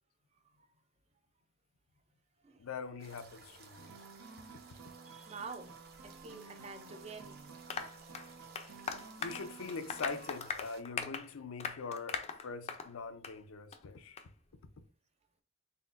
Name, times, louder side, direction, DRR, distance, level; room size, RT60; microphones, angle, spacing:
voice 1, 2.6-3.9 9.2-14.2, left 4 dB, 85° left, 0.5 m, -43 dB
sound 1, 3.0-10.8, right 4 dB, 50° right, 0.8 m, -57 dB
sound 2, 3.8-10.4, right 5 dB, 80° right, 0.9 m, -54 dB
voice 2, 5.1-7.4, right 4 dB, 30° right, 0.4 m, -48 dB
Applause, 7.7-12.9 13.2-13.4 13.7-13.8 14.2-14.3, left 5 dB, 30° left, 0.4 m, -40 dB
4.2 x 3.6 x 2.5 m
head